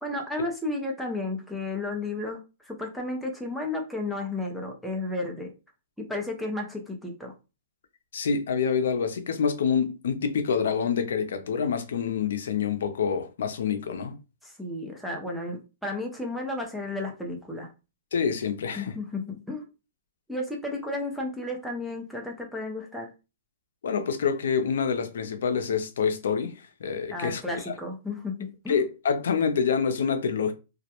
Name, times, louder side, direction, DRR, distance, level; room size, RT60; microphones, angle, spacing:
voice 1, 0.0-5.5 6.0-7.3 14.4-17.7 18.8-19.7 20.3-23.1 27.1-28.8, left 2 dB, ahead, 0.4 m, -33 dB
voice 2, 8.1-14.2 18.1-18.9 23.8-27.8 28.7-30.5, left 6 dB, 80° left, 0.4 m, -27 dB
2.2 x 2.1 x 2.8 m
hypercardioid pair, 175°, 0 cm